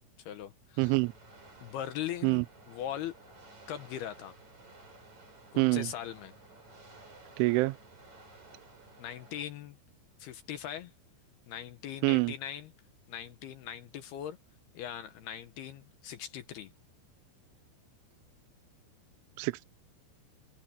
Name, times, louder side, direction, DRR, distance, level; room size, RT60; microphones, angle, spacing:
voice 1, 0.2-0.9 1.6-2.4 2.7-3.1 3.7-4.4 5.5-6.3 9.0-9.8 10.2-10.9 11.5-12.7 13.1-14.4 14.7-16.7, left 10 dB, 70° left, 2.6 m, -40 dB
sound 1, 0.8-9.5, right 2 dB, 35° right, 8.7 m, -55 dB
voice 2, 0.8-1.1 2.2-2.4 5.6-5.9 7.4-7.8 12.0-12.3 19.4-19.6, right 24 dB, 85° right, 3.1 m, -26 dB
open air
omnidirectional pair, 5.5 m